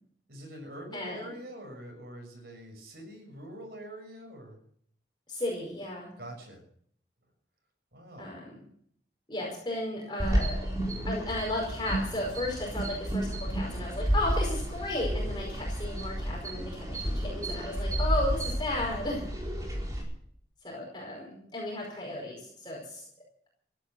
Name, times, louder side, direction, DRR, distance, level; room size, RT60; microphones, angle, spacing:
voice 1, 0.3-4.6 6.2-6.6 7.9-8.3, right 1 dB, 55° right, 3 dB, 6.4 m, -44 dB
voice 2, 0.9-1.2 5.3-6.1 8.2-8.6 9.3-10.6 11.0-19.3 20.6-23.0, left 1 dB, 25° left, -2 dB, 5.1 m, -34 dB
sound 1, 10.2-20.0, equal, 20° right, 4.5 m, -31 dB
16.0 x 10.5 x 7.7 m, 0.63 s
head